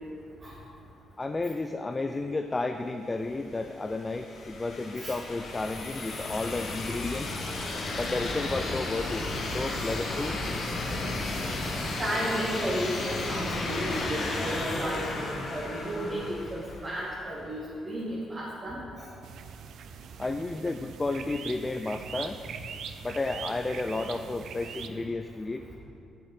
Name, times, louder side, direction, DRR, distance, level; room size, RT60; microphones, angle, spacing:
voice 1, 1.2-7.3 7.9-9.3 9.5-10.4 20.2-22.4 23.0-25.7, left 3 dB, 20° left, 7 dB, 0.3 m, -32 dB
sound 1, 3.4-17.2, left 2 dB, 65° left, 1.3 m, -33 dB
voice 2, 12.0-19.1, equal, 30° right, -7 dB, 1.7 m, -33 dB
sound 2, 19.2-24.9, right 7 dB, 70° right, 0.4 m, -42 dB
8.4 x 6.9 x 4.1 m, 2.5 s
cardioid pair, 90°, 0 cm